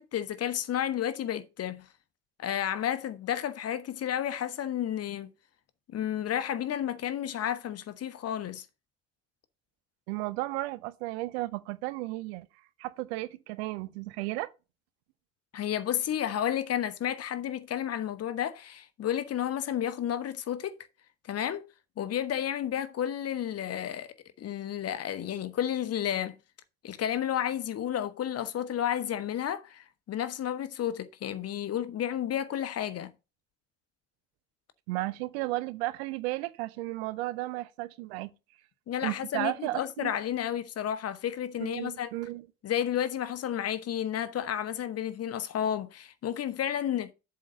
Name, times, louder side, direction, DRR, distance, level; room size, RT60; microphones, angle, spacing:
voice 1, 0.0-1.9 2.4-5.3 5.9-8.7 15.5-20.9 21.3-21.7 22.0-26.4 26.8-33.1 38.9-42.1 42.6-47.1, left 10 dB, 50° left, 1.0 m, -32 dB
voice 2, 10.1-12.5 12.8-14.5 34.9-38.3 39.0-40.1 41.6-42.5, right 19 dB, 75° right, 0.6 m, -34 dB
7.6 x 3.8 x 6.5 m
hypercardioid pair, 45°, 31 cm